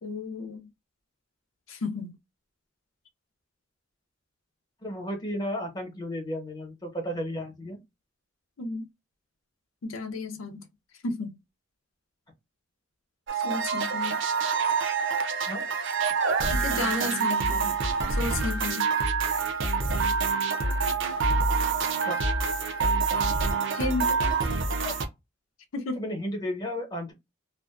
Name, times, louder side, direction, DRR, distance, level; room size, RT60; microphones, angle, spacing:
voice 1, 0.0-0.7 1.7-2.1 8.6-8.9 9.8-10.7 11.0-11.4 13.3-14.2 16.5-17.8 18.1-18.9 23.7-24.1 25.7-26.1, left 3 dB, 80° left, 0.5 m, -32 dB
voice 2, 4.8-7.8 15.5-15.7 22.0-22.2 24.8-25.0 26.0-27.1, equal, 20° left, 0.9 m, -33 dB
sound 1, 13.3-25.0, right 4 dB, 65° right, 0.5 m, -26 dB
2.5 x 2.2 x 2.4 m
head